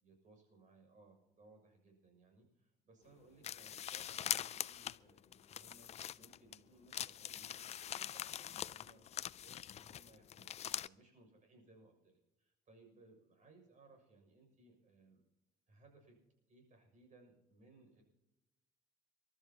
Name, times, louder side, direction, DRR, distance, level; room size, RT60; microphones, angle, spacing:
voice 1, 0.0-15.2 15.7-16.2 16.5-18.0, right 2 dB, 45° right, 3 dB, 6.6 m, -65 dB
sound 1, 3.4-6.6 6.9-10.9, left 10 dB, 40° left, 0.4 m, -43 dB
28.0 x 12.5 x 2.9 m, 0.98 s
cardioid pair, 110°, 17 cm